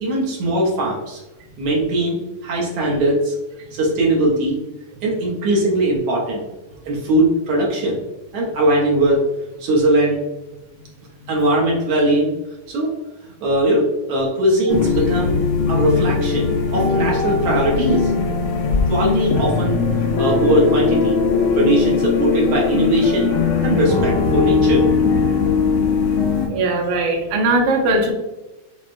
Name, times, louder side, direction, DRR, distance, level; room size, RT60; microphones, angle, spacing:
voice 1, 0.0-1.2 1.6-3.3 3.7-4.6 5.0-6.4 6.8-8.0 8.3-9.2 9.6-10.2 11.3-12.3 12.7-12.9 13.2-15.4 15.7-18.1 18.9-19.8 20.2-21.2 21.5-23.3 23.6-24.9, right 1 dB, 70° right, -3 dB, 1.5 m, -19 dB
sound 1, 14.7-26.5, left 5 dB, 75° left, 1.7 m, -19 dB
voice 2, 26.5-28.1, right 2 dB, 85° right, 1 dB, 2.1 m, -19 dB
6.2 x 2.1 x 2.5 m, 1.0 s
omnidirectional pair, 3.4 m